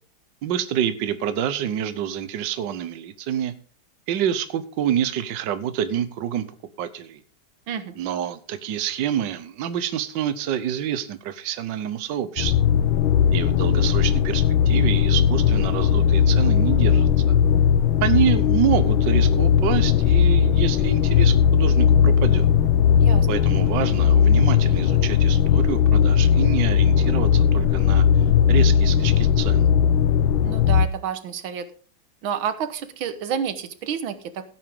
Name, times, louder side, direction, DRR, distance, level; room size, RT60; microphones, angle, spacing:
voice 1, 0.4-3.5 4.1-6.5 6.8-7.2 8.0-12.5 13.3-17.4 18.0-22.5 23.3-29.7, right 10 dB, 70° right, 11 dB, 1.5 m, -27 dB
voice 2, 7.7-8.0 23.0-23.3 30.4-31.7 32.2-34.5, right 8 dB, 90° right, 11 dB, 1.9 m, -29 dB
sound 1, 12.4-30.9, left 8 dB, 80° left, 1.5 m, -18 dB
16.0 x 8.8 x 3.6 m, 0.40 s
omnidirectional pair, 2.1 m